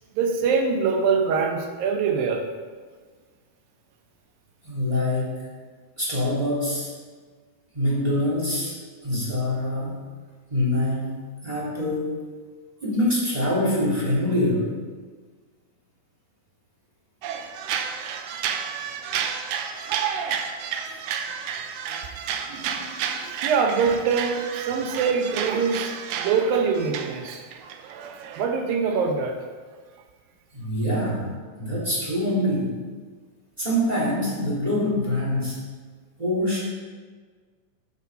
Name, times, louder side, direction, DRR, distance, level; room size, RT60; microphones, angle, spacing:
voice 1, 0.2-2.5 22.5-27.4 27.9-28.1 28.4-29.4, right 5 dB, 75° right, 4 dB, 2.3 m, -24 dB
voice 2, 4.6-5.3 6.0-6.9 7.7-8.7 9.0-9.9 10.5-11.1 11.4-12.1 12.8-14.7 30.5-31.3 31.6-32.7 33.6-35.6 36.2-36.6, left 1 dB, 10° right, -6 dB, 2.4 m, -24 dB
sound 1, 17.2-28.5, right 7 dB, 90° right, 1.9 m, -31 dB
13.0 x 5.6 x 5.4 m, 1.5 s
omnidirectional pair, 4.8 m